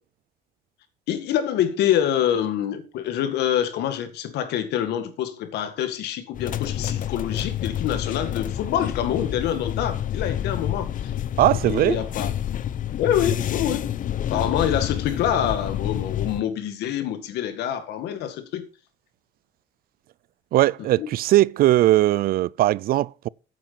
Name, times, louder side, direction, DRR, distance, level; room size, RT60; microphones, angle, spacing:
voice 1, 1.1-11.1 11.7-12.3 13.0-13.9 14.3-18.6 21.0-21.1, left 10 dB, 80° left, 2.0 m, -26 dB
sound 1, 6.3-16.4, left 10 dB, 50° left, 0.8 m, -28 dB
voice 2, 11.4-12.0 20.5-23.3, right 15 dB, 60° right, 0.4 m, -19 dB
9.3 x 7.7 x 5.8 m
cardioid pair, 110°, 17 cm